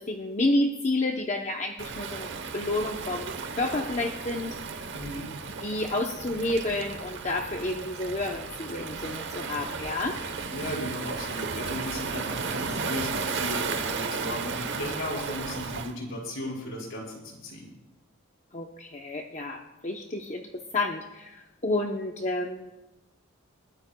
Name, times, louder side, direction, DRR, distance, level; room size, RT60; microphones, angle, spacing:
voice 1, 0.0-4.6 5.6-10.2 18.5-20.4 20.7-22.7, left 2 dB, 30° left, 2 dB, 0.8 m, -30 dB
Waves surf, 1.8-15.9, right 5 dB, 55° right, 1.0 m, -34 dB
voice 2, 4.9-5.3 10.5-17.7, left 1 dB, 60° left, -3 dB, 5.1 m, -36 dB
29.0 x 12.5 x 2.3 m, 0.99 s
head